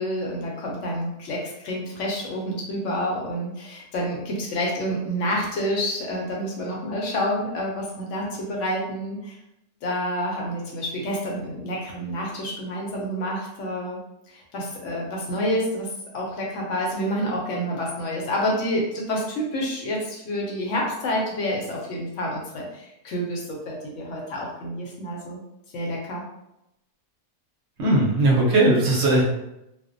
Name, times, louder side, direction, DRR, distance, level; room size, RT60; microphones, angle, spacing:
voice 1, 0.0-9.4 9.8-14.0 14.3-15.9 16.1-25.4 25.7-26.2, equal, 65° left, -2 dB, 0.8 m, -28 dB
voice 2, 27.8-29.2, right 2 dB, 60° right, -4 dB, 0.8 m, -18 dB
2.4 x 2.0 x 2.5 m, 0.86 s
omnidirectional pair, 1.5 m